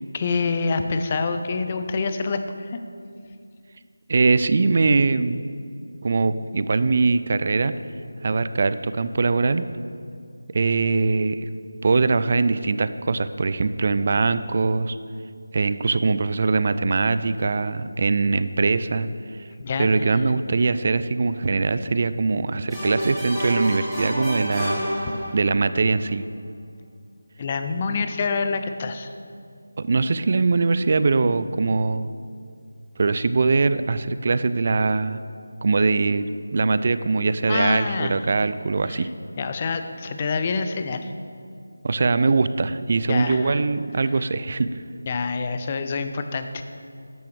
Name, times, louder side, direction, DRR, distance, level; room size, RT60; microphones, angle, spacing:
voice 1, 0.1-2.8 19.6-20.2 25.1-25.2 27.4-29.1 37.5-38.2 38.9-39.1 39.4-41.1 43.1-43.6 45.1-46.6, left 4 dB, 25° left, 8 dB, 0.6 m, -27 dB
voice 2, 4.1-5.4 6.0-7.7 8.2-9.6 10.5-11.5 11.8-15.0 15.5-19.1 19.4-19.5 19.8-24.8 25.3-26.2 29.8-32.1 33.0-35.2 35.6-36.3 36.5-39.1 41.8-44.7, right 3 dB, 40° right, 13 dB, 0.4 m, -22 dB
sound 1, 22.7-25.6, equal, ahead, 2.2 m, -28 dB
13.0 x 10.5 x 3.4 m, 2.3 s
figure-of-eight pair, 160°, 0 cm